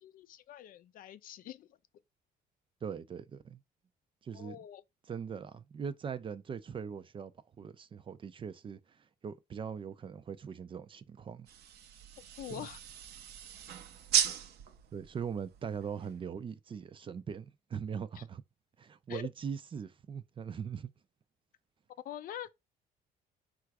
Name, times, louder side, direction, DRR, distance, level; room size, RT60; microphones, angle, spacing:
voice 1, 0.0-1.7 4.3-4.8 12.4-12.8 18.2-18.3 19.1-19.3 22.0-22.5, left 11 dB, 55° left, 0.4 m, -44 dB
voice 2, 2.8-3.6 4.2-4.6 5.1-7.3 7.6-11.5 12.5-12.7 14.9-18.4 18.8-20.9, right 7 dB, 30° right, 0.4 m, -41 dB
sound 1, 11.5-16.3, right 9 dB, 75° right, 0.6 m, -36 dB
3.7 x 2.4 x 4.6 m
cardioid pair, 110°, 17 cm